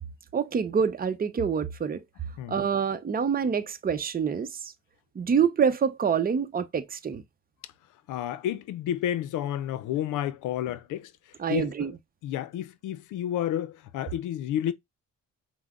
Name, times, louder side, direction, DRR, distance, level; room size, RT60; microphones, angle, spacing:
voice 1, 0.3-2.0 2.5-4.7 5.1-7.2 11.4-12.0, right 7 dB, 30° right, 0.7 m, -26 dB
voice 2, 8.1-11.1 11.5-11.9 12.2-14.7, left 11 dB, 80° left, 0.5 m, -30 dB
5.6 x 2.1 x 3.6 m
cardioid pair, 90°, 30 cm